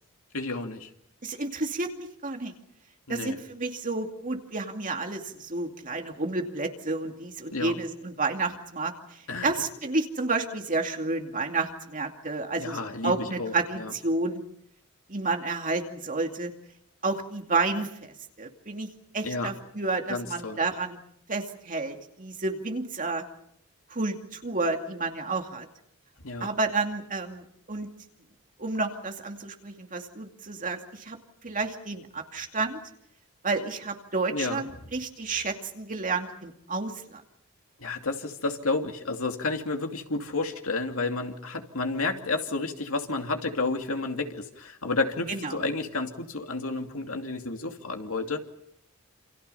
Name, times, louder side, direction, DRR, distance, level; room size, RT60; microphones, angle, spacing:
voice 1, 0.3-0.9 3.1-3.4 7.5-7.7 9.3-9.5 12.6-13.9 19.2-19.5 20.1-20.6 26.2-26.5 34.3-34.6 37.8-48.4, left 3 dB, 65° left, 4 dB, 2.7 m, -31 dB
voice 2, 1.2-2.5 3.1-8.9 9.4-12.8 13.0-14.4 15.1-16.5 17.0-18.9 19.1-21.0 21.3-23.2 23.9-25.7 26.4-27.9 28.6-31.2 31.4-32.8 33.4-37.2 45.3-45.6, right 3 dB, 35° right, 3 dB, 2.5 m, -30 dB
28.5 x 27.5 x 5.7 m, 0.73 s
head